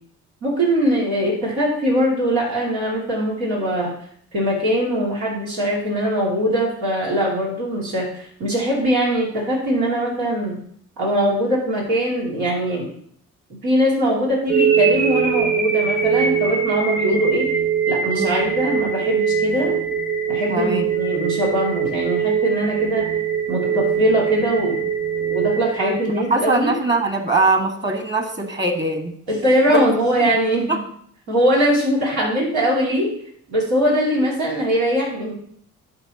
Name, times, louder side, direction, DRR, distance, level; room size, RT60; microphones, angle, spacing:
voice 1, 0.4-3.9 4.3-10.6 11.0-12.9 13.5-17.5 17.9-19.8 20.3-23.1 23.5-24.8 25.3-26.8 29.3-30.8 31.3-33.1 33.5-35.3, equal, 90° right, -5 dB, 2.6 m, -21 dB
sound 1, 14.5-26.5, right 7 dB, 60° right, 2.7 m, -22 dB
voice 2, 18.1-18.4 20.5-20.9 25.8-29.1 29.7-29.8 30.7-30.8 32.2-32.3 34.2-34.3, right 3 dB, 30° right, 4 dB, 1.7 m, -22 dB
11.5 x 5.3 x 2.9 m, 0.63 s
supercardioid pair, 55°, 35 cm